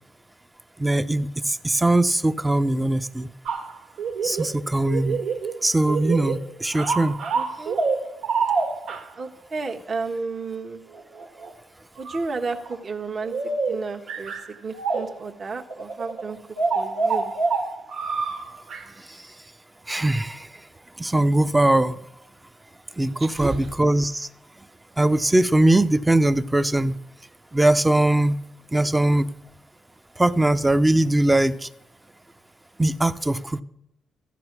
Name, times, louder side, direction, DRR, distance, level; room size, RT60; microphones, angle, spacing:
voice 1, 0.8-3.3 4.2-5.2 5.6-7.2 19.1-19.3 19.9-20.5 21.0-22.0 23.0-24.3 25.0-27.0 27.5-28.4 28.7-29.3 30.2-31.7 32.8-33.6, right 1 dB, 10° right, 0.7 m, -21 dB
sound 1, 3.5-4.5 4.9-5.6 5.9-6.4 6.7-9.1 10.9-11.5 12.0-12.2 12.6-12.7 13.2-15.3 15.7-18.9, right 4 dB, 75° right, 1.9 m, -27 dB
voice 2, 7.3-7.8 9.2-10.8 12.0-16.4 16.7-17.3 23.2-23.7, right 4 dB, 45° right, 1.4 m, -32 dB
14.5 x 10.0 x 6.0 m
cardioid pair, 90°, 0 cm